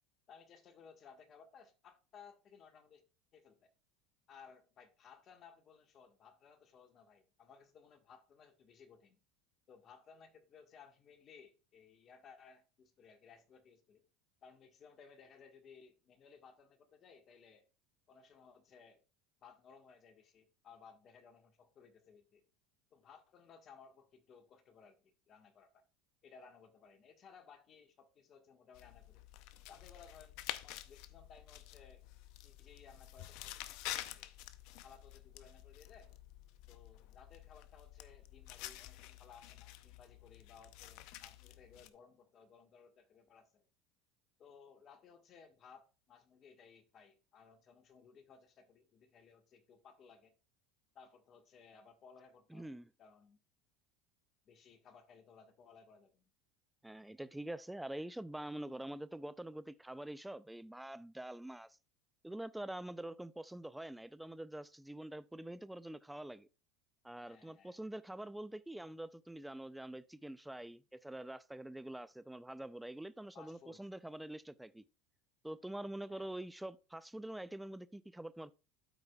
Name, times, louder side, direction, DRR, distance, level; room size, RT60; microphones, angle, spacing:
voice 1, 0.3-3.0 3.3-3.7 4.3-9.2 9.7-14.1 14.4-17.7 18.1-19.0 19.4-22.5 22.9-25.8 26.2-29.3 29.7-30.4 30.6-32.0 32.4-34.3 34.8-36.1 36.7-43.6 44.4-50.3 50.9-52.7 53.0-53.4 54.5-56.3 67.2-67.8 73.3-73.8 76.1-76.3, left 6 dB, 40° left, 1.5 m, -60 dB
sound 1, 28.7-41.9, left 14 dB, 65° left, 0.6 m, -49 dB
voice 2, 52.5-52.9 56.8-61.8 62.2-66.5 67.0-74.8 75.4-78.5, right 1 dB, 5° right, 0.4 m, -45 dB
13.0 x 4.8 x 2.3 m
supercardioid pair, 95°, 0 cm